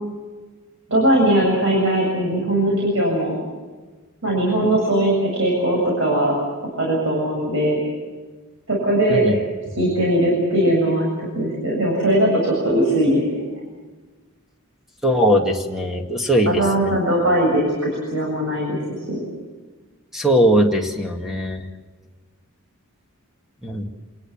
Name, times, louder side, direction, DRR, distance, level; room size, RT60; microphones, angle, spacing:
voice 1, 0.9-3.4 4.2-6.3 6.8-7.8 8.7-9.2 9.8-13.4 16.5-19.2, right 1 dB, 60° right, -2 dB, 7.4 m, -20 dB
voice 2, 15.0-16.9 20.1-21.7 23.6-23.8, equal, ahead, 2 dB, 2.2 m, -20 dB
28.0 x 20.0 x 7.4 m, 1.3 s
head